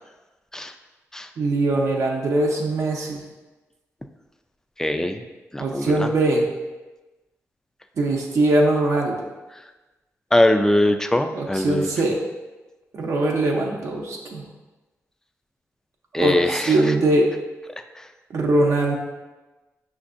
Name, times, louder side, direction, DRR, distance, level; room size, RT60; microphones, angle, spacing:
voice 1, 1.4-3.2 5.6-6.5 8.0-9.2 11.3-12.2 12.9-14.5 16.1-17.3 18.3-19.0, right 2 dB, 65° right, -1 dB, 0.5 m, -21 dB
voice 2, 4.8-5.2 5.5-6.1 10.3-11.9 16.1-16.9 18.0-18.1, left 1 dB, 10° left, 7 dB, 0.3 m, -21 dB
5.2 x 2.5 x 2.5 m, 1.2 s
cardioid pair, 60°, 5 cm